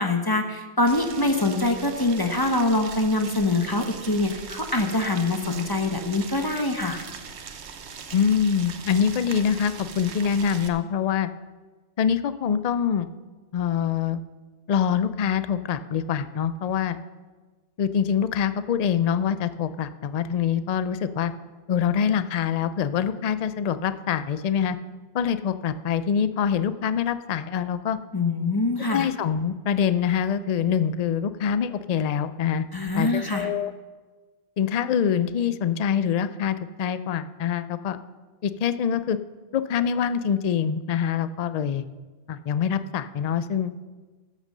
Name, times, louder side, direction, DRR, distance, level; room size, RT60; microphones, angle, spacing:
voice 1, 0.0-7.0 28.1-29.1 32.7-33.5, left 2 dB, 20° left, 5 dB, 0.9 m, -24 dB
Boiling, 0.9-10.7, right 6 dB, 85° right, 1.1 m, -40 dB
voice 2, 8.1-11.3 12.0-13.1 13.5-14.2 14.7-17.0 17.8-21.3 21.7-24.8 25.1-28.0 28.9-32.6 32.9-33.7 34.6-38.0 38.4-39.2 39.5-41.9 42.3-43.7, left 8 dB, 50° left, 13 dB, 0.5 m, -25 dB
13.5 x 6.5 x 6.6 m, 1.3 s
omnidirectional pair, 1.1 m